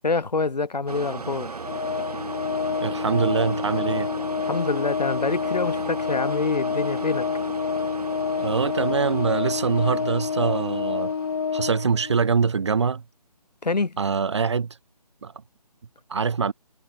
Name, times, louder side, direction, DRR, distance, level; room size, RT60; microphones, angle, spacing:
voice 1, 0.0-1.6 4.5-7.3 13.6-14.0, left 3 dB, 90° left, 3.0 m, -26 dB
sound 1, 0.9-12.1, right 4 dB, 70° right, 2.7 m, -36 dB
Organ, 1.6-12.3, left 6 dB, 35° left, 1.5 m, -28 dB
voice 2, 2.8-4.1 8.4-11.1 11.5-13.0 14.0-14.8 15.2-15.3 16.1-16.5, right 5 dB, 45° right, 2.6 m, -24 dB
hypercardioid pair, 170°, 21 cm